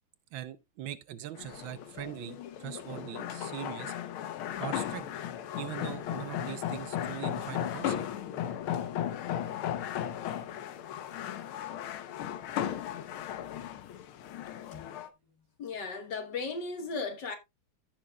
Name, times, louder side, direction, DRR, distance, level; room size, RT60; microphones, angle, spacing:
voice 1, 0.3-3.9 4.6-5.0 5.6-8.1, right 12 dB, 75° right, 1.3 m, -41 dB
sound 1, 1.4-15.1, left 10 dB, 85° left, 1.7 m, -36 dB
voice 2, 15.6-17.4, left 4 dB, 60° left, 1.7 m, -36 dB
14.5 x 6.2 x 2.2 m
omnidirectional pair, 2.3 m